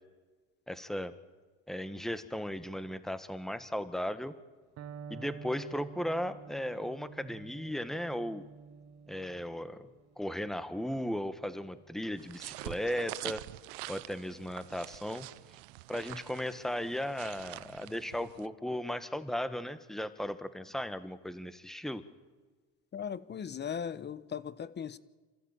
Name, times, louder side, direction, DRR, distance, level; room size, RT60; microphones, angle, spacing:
voice 1, 0.7-1.1 1.7-4.3 5.1-8.4 9.1-9.9 10.2-13.4 13.9-15.3 15.9-22.0, equal, ahead, 12 dB, 1.5 m, -36 dB
Electric guitar, 4.8-12.6, right 6 dB, 55° right, 1.9 m, -50 dB
sound 1, 12.2-18.5, right 21 dB, 90° right, 0.7 m, -45 dB
voice 2, 22.9-25.0, left 7 dB, 35° left, 17 dB, 1.1 m, -38 dB
27.5 x 14.5 x 9.0 m, 1.3 s
supercardioid pair, 95°, 31 cm